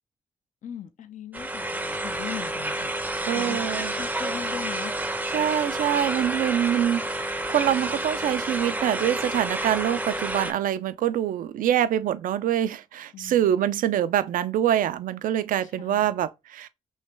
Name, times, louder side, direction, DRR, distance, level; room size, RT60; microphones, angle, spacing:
voice 1, 0.6-3.7 4.0-4.9 13.1-13.5 15.6-16.1, left 9 dB, 60° left, 0.5 m, -39 dB
sound 1, 1.3-10.5, right 1 dB, 10° right, 0.5 m, -29 dB
voice 2, 3.3-3.9 5.3-16.7, right 11 dB, 75° right, 0.4 m, -25 dB
3.1 x 2.9 x 3.2 m
supercardioid pair, 40°, 14 cm